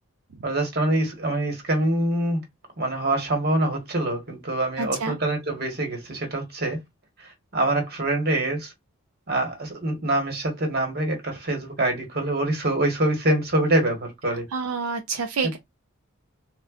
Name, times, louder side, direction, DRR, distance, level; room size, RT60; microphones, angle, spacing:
voice 1, 0.4-2.4 2.8-6.8 7.2-8.7 9.3-14.5, right 1 dB, 45° right, 1.2 m, -25 dB
voice 2, 4.8-5.2 14.5-15.6, right 5 dB, 80° right, 0.5 m, -28 dB
3.7 x 2.2 x 2.3 m
head